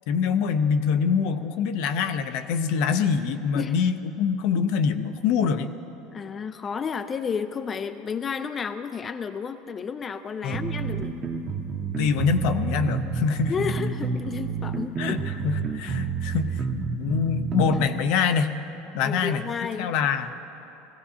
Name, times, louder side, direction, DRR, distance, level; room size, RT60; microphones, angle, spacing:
voice 1, 0.1-5.7 10.4-10.6 12.0-13.6 15.0-18.6 18.9-19.4 19.8-20.3, left 6 dB, 70° left, 8 dB, 0.6 m, -25 dB
voice 2, 6.1-11.2 13.5-15.3 19.0-19.9, left 6 dB, 30° left, 9 dB, 0.4 m, -32 dB
sound 1, 10.5-17.9, right 5 dB, 25° right, 1.0 m, -29 dB
17.5 x 15.5 x 2.8 m, 2.9 s
supercardioid pair, 105°, 0 cm